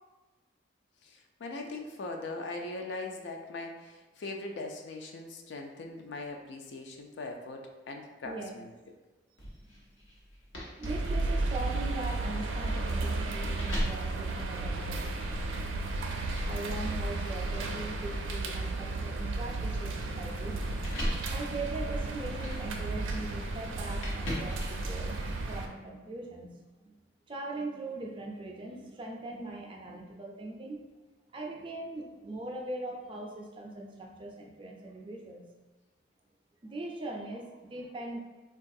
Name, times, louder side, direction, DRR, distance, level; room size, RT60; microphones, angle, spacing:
voice 1, 1.0-8.7, left 2 dB, 60° left, 3 dB, 0.4 m, -40 dB
voice 2, 8.2-8.5 9.5-9.7 10.8-15.5 16.4-20.6 21.3-25.2 25.5-26.9 27.3-30.8 31.3-35.5 36.6-38.2, right 2 dB, 25° right, 0 dB, 0.4 m, -40 dB
sound 1, 9.4-15.2 15.8-25.3, equal, 80° left, 0.9 m, -40 dB
sound 2, 10.8-25.7, right 2 dB, 90° right, 0.4 m, -33 dB
3.8 x 2.3 x 2.6 m, 1.2 s
head